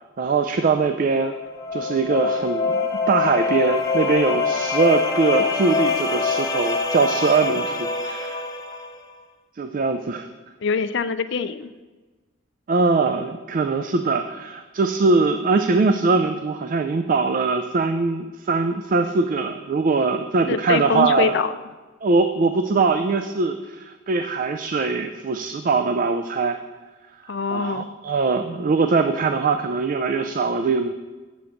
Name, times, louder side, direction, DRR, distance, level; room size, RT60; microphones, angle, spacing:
voice 1, 0.2-1.3 1.7-2.8 3.1-8.4 9.6-10.3 12.7-21.3 22.0-26.6 27.2-30.9, right 4 dB, 45° right, 7 dB, 0.4 m, -22 dB
sound 1, 1.2-9.0, left 4 dB, 20° left, 0.9 m, -24 dB
voice 2, 10.6-11.7 20.5-21.5 27.3-27.9, left 5 dB, 65° left, 12 dB, 0.5 m, -24 dB
7.7 x 5.2 x 7.0 m, 1.2 s
head